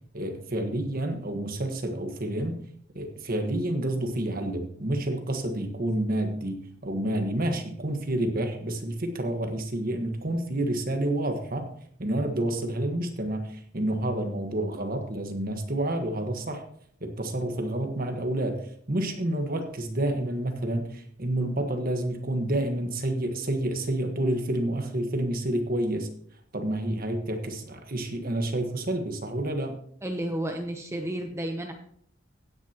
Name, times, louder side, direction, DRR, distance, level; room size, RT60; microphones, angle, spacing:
voice 1, 0.1-2.6 2.9-11.7 12.0-16.6 17.0-26.1 26.5-29.8, right 1 dB, 50° right, 4 dB, 1.4 m, -29 dB
voice 2, 30.0-31.7, right 1 dB, 15° right, 4 dB, 0.7 m, -32 dB
16.5 x 9.6 x 3.0 m, 0.64 s
head